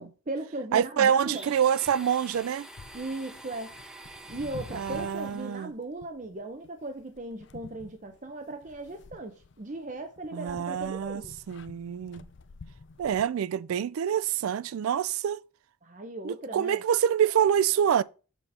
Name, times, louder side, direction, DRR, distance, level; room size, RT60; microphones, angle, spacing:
voice 1, 0.0-1.5 2.9-3.7 4.3-11.3 15.8-16.8, right 2 dB, 35° right, 0.7 m, -38 dB
voice 2, 0.7-2.7 4.7-5.7 10.3-11.2 11.5-12.3 13.0-15.4 16.2-18.0, right 8 dB, 85° right, 0.3 m, -26 dB
Domestic sounds home sounds, 1.2-5.7, right 1 dB, 5° right, 0.6 m, -47 dB
sound 1, 2.3-13.2, left 3 dB, 55° left, 0.5 m, -49 dB
7.2 x 4.3 x 6.7 m
head